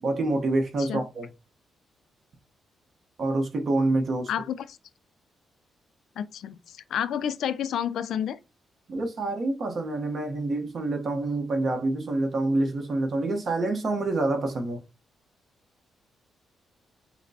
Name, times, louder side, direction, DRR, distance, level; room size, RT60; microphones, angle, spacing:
voice 1, 0.0-1.3 3.2-4.3 8.9-14.8, right 2 dB, 45° right, 1.0 m, -27 dB
voice 2, 4.3-4.8 6.2-8.4, left 9 dB, 70° left, 0.3 m, -30 dB
5.8 x 2.1 x 2.7 m
cardioid pair, 140°, 0 cm